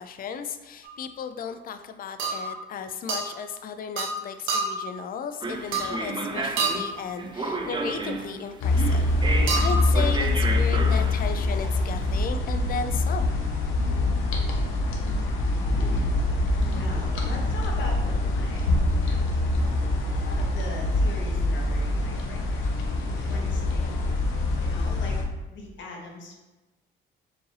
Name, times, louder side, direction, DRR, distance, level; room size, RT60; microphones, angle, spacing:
voice 1, 0.0-13.3, left 6 dB, 45° left, 9 dB, 0.4 m, -35 dB
sound 1, 0.8-1.0 2.2-2.6 3.1-3.3 4.0-4.2 4.5-4.9 5.7-6.1 6.6-7.0 9.5-9.9, right 4 dB, 90° right, 0.8 m, -28 dB
sound 2, 5.4-12.1, right 3 dB, 25° right, 0.5 m, -32 dB
sound 3, 8.6-25.2, left 2 dB, 85° left, 0.7 m, -24 dB
voice 2, 15.7-16.1 16.7-18.7 19.0-19.3 20.2-22.7 23.2-23.9 24.6-25.2 25.5-26.4, left 3 dB, 70° left, 0 dB, 1.0 m, -40 dB
4.6 x 2.6 x 3.2 m, 1.1 s
cardioid pair, 90°, 20 cm